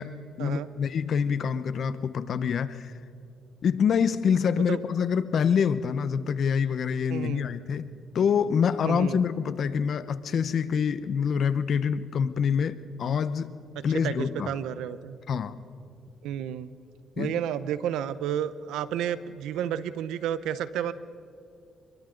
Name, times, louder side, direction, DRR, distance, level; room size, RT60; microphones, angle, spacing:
voice 1, 0.0-2.9 3.6-7.9 8.1-13.5 13.8-14.5 15.3-15.6 17.2-17.4, left 7 dB, 60° left, 13 dB, 0.9 m, -26 dB
voice 2, 7.1-7.5 8.8-9.2 13.9-15.2 16.2-16.7 17.2-20.9, right 10 dB, 90° right, 14 dB, 0.8 m, -31 dB
29.5 x 22.5 x 3.9 m, 2.7 s
cardioid pair, 90°, 0 cm